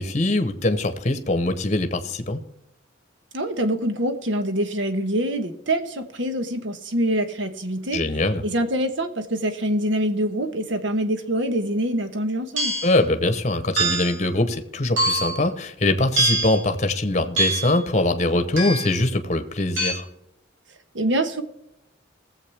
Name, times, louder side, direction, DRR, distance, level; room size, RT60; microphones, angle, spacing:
voice 1, 0.0-2.4 7.9-8.4 12.8-20.1, left 2 dB, 35° left, 9 dB, 0.9 m, -22 dB
voice 2, 3.3-8.0 8.4-12.7 20.9-21.4, right 1 dB, 65° right, 9 dB, 1.2 m, -25 dB
sound 1, 12.6-13.0 13.8-14.2 15.0-15.4 16.2-16.6 17.4-17.8 18.6-19.0 19.8-19.9, right 2 dB, 85° right, 4.2 m, -23 dB
19.0 x 7.7 x 3.4 m, 0.87 s
head